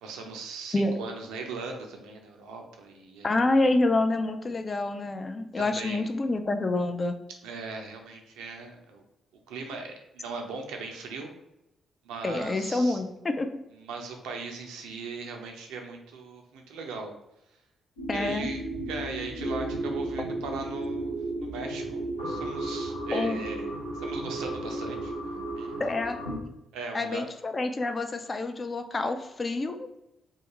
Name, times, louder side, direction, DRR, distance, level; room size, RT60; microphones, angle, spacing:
voice 1, 0.0-3.4 5.6-6.1 7.4-9.0 9.5-11.3 12.0-13.0 13.7-17.1 18.1-18.6 18.9-21.1 21.4-23.7 23.9-25.1 25.6-25.9 26.7-27.2, right 4 dB, 70° right, 3 dB, 0.4 m, -39 dB
voice 2, 3.2-7.1 12.2-13.5 18.1-18.5 23.1-23.4 25.8-26.2 26.9-29.9, left 2 dB, 35° left, 7 dB, 0.3 m, -27 dB
sound 1, 18.0-26.4, right 1 dB, 85° left, 0.6 m, -34 dB
2.4 x 2.3 x 2.9 m, 0.89 s
figure-of-eight pair, 40°, 0 cm